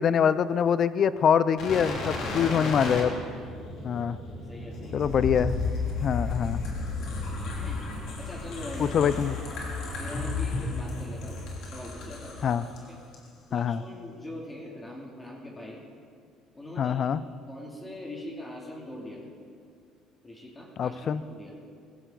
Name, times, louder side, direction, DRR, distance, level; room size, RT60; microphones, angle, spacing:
voice 1, 0.0-3.1 3.8-4.2 4.9-5.6 6.0-6.6 8.8-9.4 12.4-12.6 13.5-13.8 16.8-17.2 20.8-21.2, left 7 dB, 50° left, 16 dB, 0.5 m, -24 dB
sound 1, 1.6-12.8 13.1-13.3, left 3 dB, 65° left, 3.3 m, -33 dB
voice 2, 4.5-5.1 7.5-7.8 8.2-9.2 10.0-12.5 12.8-13.0 13.5-15.8 16.5-17.1 17.5-19.2 20.2-21.5, left 1 dB, 20° left, -2 dB, 2.8 m, -42 dB
18.0 x 15.0 x 4.0 m, 2.2 s
supercardioid pair, 80°, 0 cm